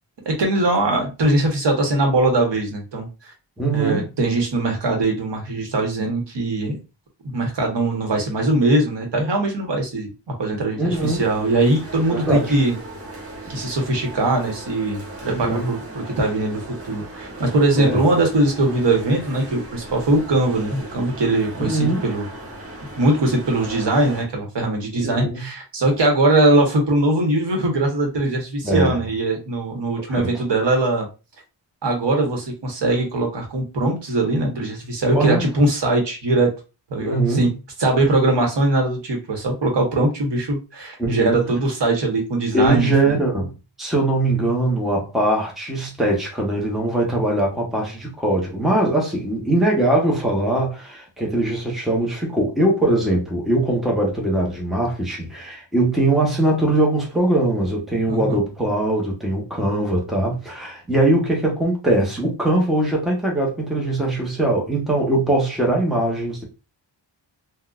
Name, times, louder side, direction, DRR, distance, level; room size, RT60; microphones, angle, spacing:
voice 1, 0.2-3.1 3.7-6.8 7.3-10.1 10.4-12.7 13.5-15.8 16.2-22.2 23.0-31.1 31.8-36.5 36.9-37.5 37.8-43.2 58.1-58.4, right 2 dB, 65° right, 1.1 m, -21 dB
voice 2, 3.6-4.1 10.8-11.2 12.1-12.6 15.3-15.7 17.8-18.0 21.5-22.0 25.0-25.4 28.6-29.0 30.1-30.3 35.1-35.5 37.0-37.4 41.0-41.4 42.5-43.5 43.8-66.4, right 2 dB, ahead, 0.9 m, -21 dB
sound 1, 10.9-24.2, right 2 dB, 30° right, 1.0 m, -37 dB
3.7 x 2.3 x 2.4 m
wide cardioid pair, 105°, 46 cm